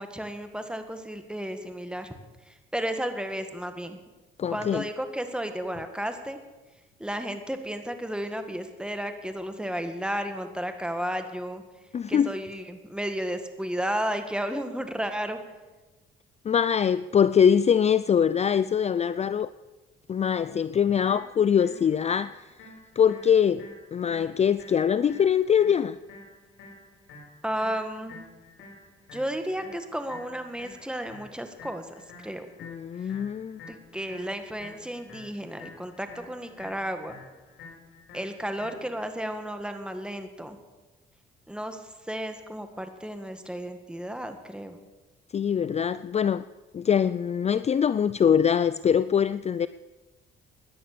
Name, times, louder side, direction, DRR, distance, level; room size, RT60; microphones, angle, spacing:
voice 1, 0.0-2.1 2.4-4.0 4.5-6.4 7.0-11.6 12.1-15.4 27.4-28.3 29.1-32.5 33.0-33.1 33.7-37.2 38.1-40.6 41.5-44.8, equal, 5° right, 1.9 m, -33 dB
voice 2, 4.4-4.8 11.9-12.3 16.4-19.5 20.1-22.5 23.0-23.7 23.9-26.0 32.6-33.6 45.3-46.4 46.7-49.7, left 8 dB, 35° left, 0.4 m, -23 dB
sound 1, 21.1-39.1, left 3 dB, 75° left, 6.7 m, -49 dB
17.0 x 11.0 x 6.9 m
cardioid pair, 90°, 20 cm